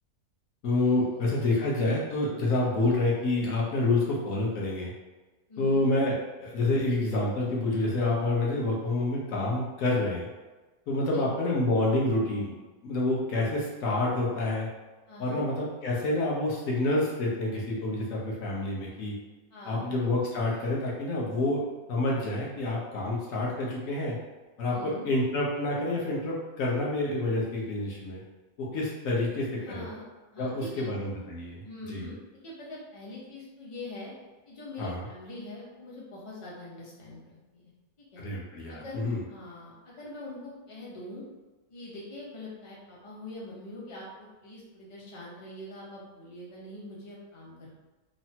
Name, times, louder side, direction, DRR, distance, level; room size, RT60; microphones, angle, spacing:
voice 1, 0.6-4.9 5.6-10.3 10.9-12.5 12.8-14.7 15.2-19.1 19.7-21.6 21.9-24.2 24.6-28.2 28.6-29.9 30.4-31.6 31.9-32.1 34.8-35.0 38.2-39.2, left 2 dB, 65° left, -4 dB, 1.1 m, -28 dB
voice 2, 5.5-5.8 11.1-11.2 15.1-15.4 19.5-19.9 24.7-25.1 29.6-30.0 30.3-30.9 31.6-32.2 32.4-34.1 34.5-37.2 37.5-37.7 38.0-38.2 38.7-41.2 41.7-47.7, left 1 dB, 40° left, -6 dB, 0.4 m, -43 dB
3.2 x 2.0 x 2.8 m, 1.2 s
omnidirectional pair, 1.6 m